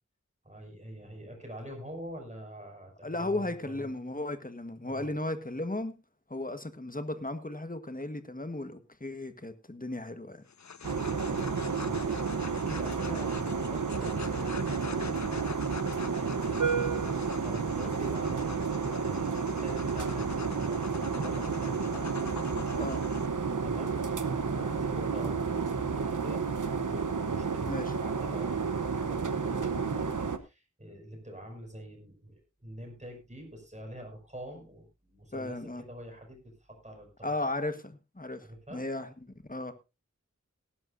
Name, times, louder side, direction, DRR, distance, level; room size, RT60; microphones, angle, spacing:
voice 1, 0.4-3.9 4.9-5.2 10.8-15.6 15.9-22.1 23.6-26.4 26.8-35.6 35.9-37.3 38.4-38.8, equal, 25° right, 5.9 m, -46 dB
voice 2, 3.0-6.0 6.3-10.4 22.7-23.0 27.7-27.9 35.3-35.8 37.2-39.1 39.5-39.7, left 2 dB, 30° left, 1.5 m, -35 dB
sound 1, 10.5-23.3, left 6 dB, 65° left, 0.6 m, -45 dB
sound 2, 10.8-30.4, right 5 dB, 85° right, 1.0 m, -31 dB
18.5 x 11.5 x 2.6 m
wide cardioid pair, 45°, 30 cm